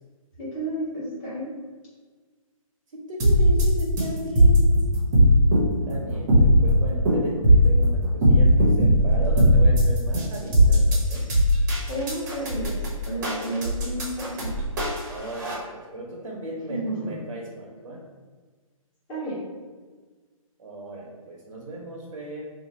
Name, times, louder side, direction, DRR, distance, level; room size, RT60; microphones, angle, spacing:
voice 1, 0.4-1.5 11.9-12.8 13.0-14.5 16.7-17.1 19.1-19.4, right 1 dB, 15° left, -8 dB, 1.1 m, -31 dB
voice 2, 2.9-4.6 5.8-11.3 15.1-18.0 20.6-22.4, right 1 dB, 65° right, -2 dB, 0.9 m, -36 dB
sound 1, 3.2-15.5, equal, 30° right, 0.9 m, -19 dB
2.9 x 2.6 x 4.1 m, 1.4 s
hypercardioid pair, 160°, 18 cm